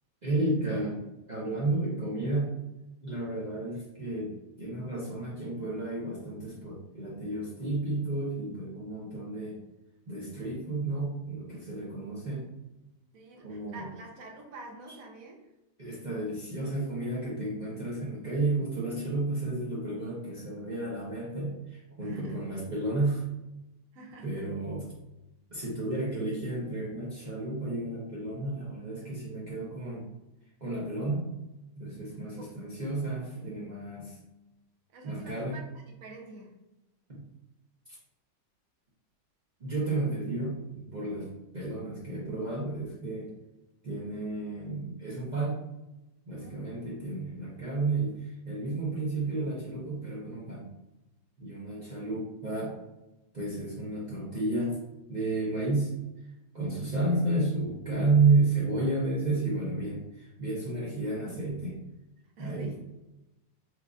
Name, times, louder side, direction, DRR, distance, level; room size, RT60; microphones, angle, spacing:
voice 1, 0.2-2.5 3.0-9.5 10.1-12.4 13.4-13.8 15.8-23.2 24.2-24.9 25.5-30.0 30.6-31.2 31.8-34.2 35.0-35.6 37.1-37.2 39.6-41.3 41.5-43.3 43.8-45.6 46.3-48.1 48.4-50.7 51.4-52.7 53.3-54.8 55.1-55.9 56.5-61.8 62.4-62.7, right 2 dB, 50° right, -8 dB, 0.5 m, -31 dB
voice 2, 13.1-15.5 22.0-22.4 23.9-24.4 32.0-32.6 34.9-36.6 41.2-41.3 46.3-46.6 56.7-57.0 62.4-62.9, right 2 dB, 65° right, 0 dB, 0.8 m, -48 dB
4.5 x 2.4 x 2.4 m, 0.96 s
omnidirectional pair, 2.0 m